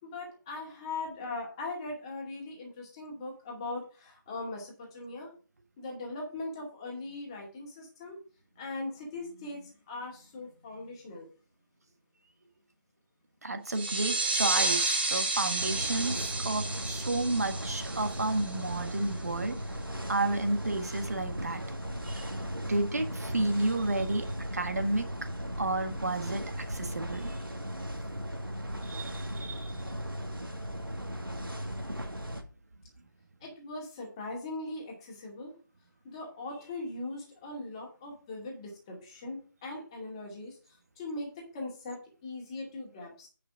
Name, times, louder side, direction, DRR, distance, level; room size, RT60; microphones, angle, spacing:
voice 1, 0.0-5.3 5.8-8.2 8.6-11.3 33.4-35.5 36.0-40.6 41.0-43.3, left 2 dB, 15° left, -1 dB, 2.2 m, -40 dB
voice 2, 13.4-19.6 20.1-21.6 22.1-22.3 22.7-24.3 24.5-25.1 25.6-27.3 28.8-29.7, right 2 dB, 45° right, 7 dB, 1.5 m, -31 dB
sound 1, 13.7-19.0, right 2 dB, 30° right, 1.5 m, -31 dB
sound 2, 15.6-32.4, equal, 80° right, 1.8 m, -37 dB
9.6 x 5.5 x 4.9 m, 0.37 s
figure-of-eight pair, 160°, 12 cm